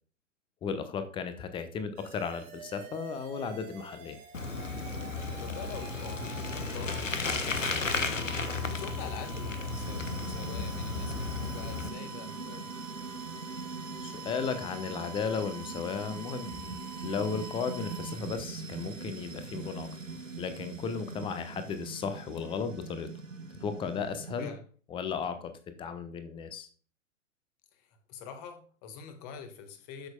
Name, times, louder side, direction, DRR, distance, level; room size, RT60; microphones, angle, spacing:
voice 1, 0.6-4.2 14.0-19.9 20.4-23.1 23.6-24.5 24.9-25.5 25.8-26.7, left 6 dB, 15° left, 0.9 m, -35 dB
sound 1, 2.0-18.2, right 6 dB, 30° right, 1.7 m, -47 dB
Bicycle, 4.3-11.9, left 4 dB, 80° left, 1.2 m, -34 dB
voice 2, 5.4-12.7 24.4-24.6 27.7-30.1, left 6 dB, 30° left, 1.7 m, -45 dB
sound 2, 9.7-24.5, right 4 dB, 85° right, 1.2 m, -42 dB
12.5 x 6.2 x 2.3 m
figure-of-eight pair, 110°, 37 cm